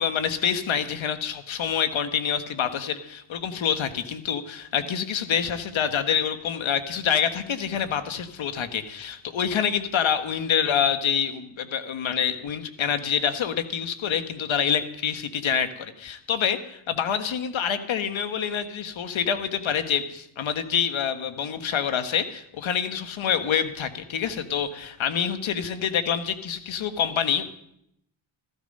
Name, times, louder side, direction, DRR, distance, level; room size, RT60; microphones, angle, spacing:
voice 1, 0.0-27.4, left 8 dB, 70° left, 9 dB, 1.5 m, -26 dB
14.5 x 12.5 x 5.4 m, 0.76 s
cardioid pair, 65°, 48 cm